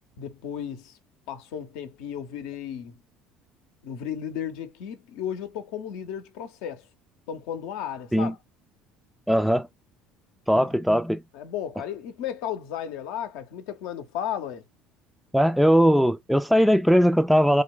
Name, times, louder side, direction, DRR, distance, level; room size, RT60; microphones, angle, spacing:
voice 1, 0.2-0.9 1.3-3.0 3.8-6.8 7.3-8.4 10.5-10.7 11.3-14.6, left 9 dB, 65° left, 0.7 m, -34 dB
voice 2, 9.3-9.7 10.5-11.2 15.3-17.6, equal, ahead, 0.4 m, -19 dB
3.4 x 2.2 x 3.7 m
hypercardioid pair, 65°, 0 cm